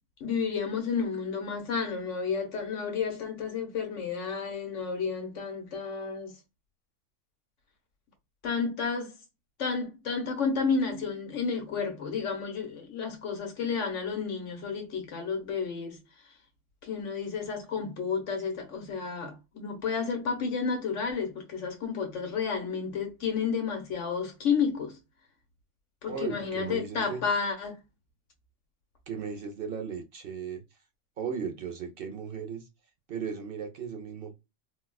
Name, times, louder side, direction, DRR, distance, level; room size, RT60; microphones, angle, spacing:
voice 1, 0.2-6.3 8.4-9.2 9.6-16.0 16.8-25.0 26.0-27.8, left 5 dB, 75° left, 1.4 m, -31 dB
voice 2, 26.1-27.2 29.1-30.6 31.2-32.7 33.1-34.4, right 6 dB, 55° right, 0.8 m, -36 dB
4.1 x 2.3 x 2.3 m
omnidirectional pair, 1.3 m